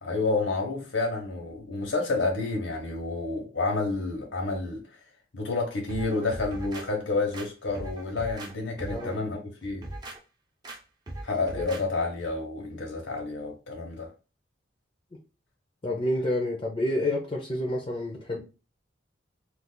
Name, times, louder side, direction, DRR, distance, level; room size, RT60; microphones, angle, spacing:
voice 1, 0.0-4.8 5.3-9.8 11.2-14.1, left 3 dB, 75° left, 0.9 m, -29 dB
sound 1, 5.9-6.9 7.3-8.5 8.8-9.1 9.6-10.2 10.6-10.8 11.1-11.8 12.2-12.3, right 1 dB, 20° right, 0.6 m, -39 dB
voice 2, 15.8-18.4, left 1 dB, 25° left, 0.5 m, -29 dB
2.4 x 2.4 x 3.8 m
head